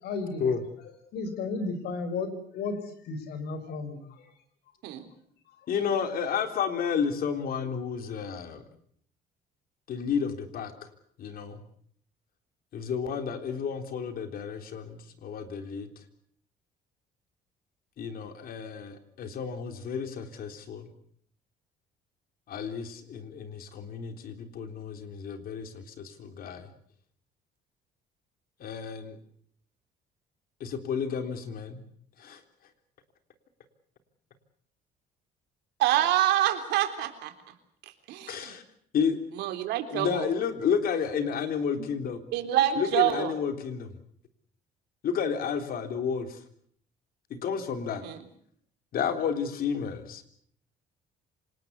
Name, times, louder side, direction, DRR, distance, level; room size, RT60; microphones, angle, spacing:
voice 1, 0.0-0.4 1.1-2.8 3.0-4.0, left 4 dB, 75° left, 11 dB, 5.2 m, -33 dB
voice 2, 5.7-8.6 9.9-10.7 11.2-11.6 12.7-15.9 18.0-20.9 22.5-26.7 28.6-29.2 30.6-31.8 32.2-32.4 38.3-38.6 38.9-39.2 39.9-42.2 42.8-43.9 45.0-46.4 47.3-48.0 48.9-50.2, left 6 dB, 60° left, 8 dB, 3.6 m, -31 dB
voice 3, 35.8-37.3 38.1-38.5 39.4-40.2 41.8-41.9 42.3-43.3 48.0-48.2, right 12 dB, 85° right, 7 dB, 3.7 m, -26 dB
26.5 x 20.0 x 8.2 m, 0.63 s
cardioid pair, 110°, 17 cm